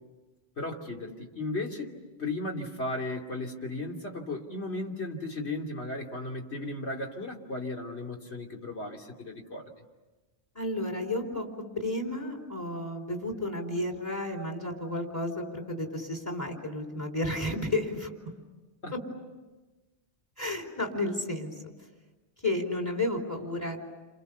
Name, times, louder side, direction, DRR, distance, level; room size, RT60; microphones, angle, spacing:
voice 1, 0.6-9.7 18.8-18.9, left 2 dB, 65° left, 1 dB, 3.2 m, -35 dB
voice 2, 10.5-11.4 11.7-18.1 18.9-19.0 20.4-21.7 22.4-23.9, left 1 dB, 15° left, 3 dB, 4.4 m, -32 dB
29.5 x 28.0 x 6.9 m, 1.2 s
omnidirectional pair, 1.2 m